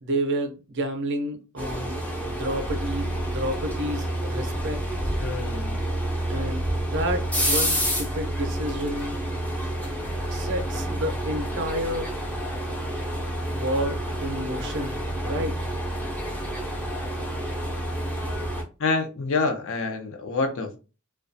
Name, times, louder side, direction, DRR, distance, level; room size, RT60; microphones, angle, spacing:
voice 1, 0.0-4.8 6.3-9.2 10.3-12.1 13.5-15.7, right 1 dB, 55° right, 0.5 m, -30 dB
sound 1, 1.6-18.6, right 1 dB, 5° left, 0.4 m, -29 dB
voice 2, 5.2-5.8 18.8-20.8, left 3 dB, 60° left, 0.5 m, -27 dB
2.3 x 2.2 x 2.5 m
head